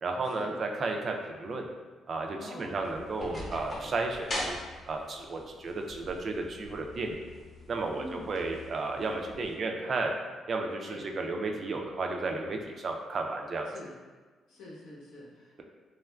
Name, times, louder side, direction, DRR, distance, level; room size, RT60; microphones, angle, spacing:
voice 1, 0.0-1.7 2.1-4.6 4.9-7.2 7.7-10.1 10.5-13.7, right 3 dB, 50° right, 3 dB, 0.3 m, -33 dB
voice 2, 2.4-2.7 7.9-8.3 10.8-11.0 13.7-13.9 14.5-15.6, left 1 dB, 90° left, -5 dB, 0.7 m, -45 dB
sound 1, 2.7-9.5, left 1 dB, 35° left, 0.7 m, -42 dB
2.9 x 2.3 x 2.2 m, 1.3 s
cardioid pair, 90°, 0 cm